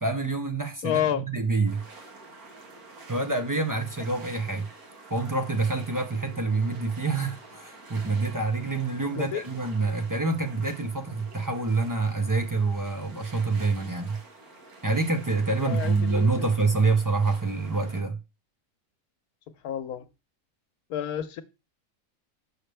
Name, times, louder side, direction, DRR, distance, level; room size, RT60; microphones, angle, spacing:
voice 1, 0.0-1.8 3.1-4.7 5.1-14.2 14.8-18.2, right 3 dB, 30° right, 0.3 m, -26 dB
voice 2, 0.8-1.2 9.2-9.4 15.6-16.5 19.6-20.1 20.9-21.4, left 10 dB, 90° left, 1.3 m, -29 dB
sound 1, 1.6-18.0, right 3 dB, 80° right, 2.0 m, -48 dB
6.5 x 6.4 x 3.3 m
omnidirectional pair, 1.6 m